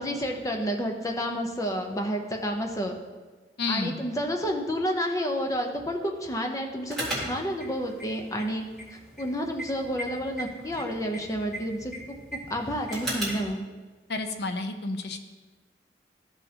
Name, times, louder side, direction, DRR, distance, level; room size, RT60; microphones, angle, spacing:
voice 1, 0.0-2.9 3.7-13.6, equal, 20° left, 3 dB, 0.7 m, -30 dB
voice 2, 3.6-4.0 14.1-15.2, left 3 dB, 65° left, 7 dB, 0.7 m, -30 dB
sound 1, 6.9-13.5, right 1 dB, ahead, 2.1 m, -38 dB
13.5 x 5.3 x 2.9 m, 1.4 s
head